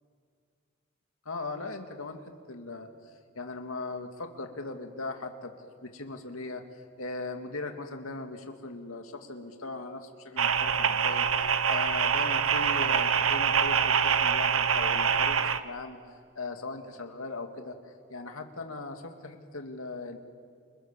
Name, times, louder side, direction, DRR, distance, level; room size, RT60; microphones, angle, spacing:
voice 1, 1.3-2.2 2.5-5.5 5.8-16.0 16.3-17.8 18.1-20.2, left 3 dB, 85° left, 5 dB, 2.3 m, -39 dB
sound 1, 10.4-15.6, right 7 dB, 75° right, 1.1 m, -25 dB
29.5 x 27.0 x 7.5 m, 2.1 s
head